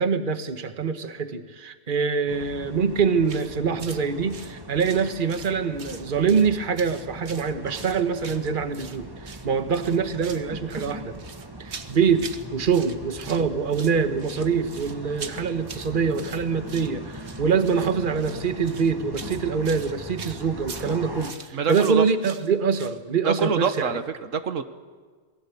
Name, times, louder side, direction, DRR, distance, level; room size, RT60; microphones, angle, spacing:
voice 1, 0.0-11.2 11.6-23.9, right 5 dB, 45° right, 9 dB, 1.4 m, -24 dB
sound 1, 2.3-21.3, right 1 dB, 20° right, 1.7 m, -40 dB
sound 2, 3.2-3.5 3.8-4.0 4.3-5.5 5.8-6.5 6.8-9.0 9.2-9.5 9.7-10.4 10.7-12.4 12.7-13.4 13.7-23.0, right 5 dB, 60° right, 1.7 m, -42 dB
voice 2, 21.5-22.0 23.2-24.6, right 6 dB, 85° right, 10 dB, 1.6 m, -25 dB
28.0 x 20.5 x 8.4 m, 1.5 s
omnidirectional pair, 1.3 m